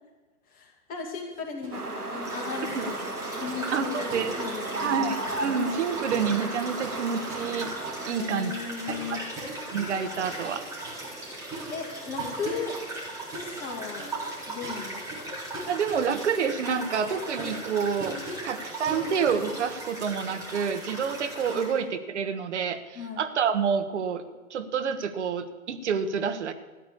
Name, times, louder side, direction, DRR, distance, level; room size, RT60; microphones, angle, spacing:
voice 1, 0.5-5.1 8.1-9.2 11.7-12.8 13.3-14.1 14.5-15.1 21.5-21.7 22.9-23.2, left 6 dB, 20° left, 1 dB, 2.4 m, -37 dB
sound 1, 1.6-1.9 2.2-5.0 5.3-20.2, right 1 dB, 25° right, 6.9 m, -42 dB
sound 2, 1.7-8.1, right 3 dB, 90° right, 1.9 m, -34 dB
sound 3, 2.2-21.8, right 2 dB, 5° right, 4.0 m, -38 dB
voice 2, 3.7-4.3 4.8-7.7 8.0-8.5 9.7-10.6 15.7-18.2 18.4-24.2 24.5-26.5, right 6 dB, 50° right, 9 dB, 1.4 m, -28 dB
14.5 x 9.2 x 8.6 m, 1.2 s
figure-of-eight pair, 125°, 44 cm